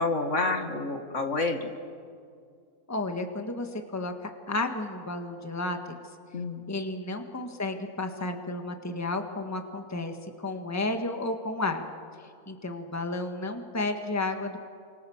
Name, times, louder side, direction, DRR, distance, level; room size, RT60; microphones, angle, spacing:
voice 1, 0.0-1.7 6.3-6.7, left 3 dB, 55° left, 5 dB, 2.2 m, -28 dB
voice 2, 2.9-4.1 4.5-5.8 6.7-11.9 12.5-14.6, left 2 dB, 10° left, 5 dB, 1.7 m, -32 dB
29.5 x 26.0 x 7.3 m, 2.2 s
omnidirectional pair, 1.6 m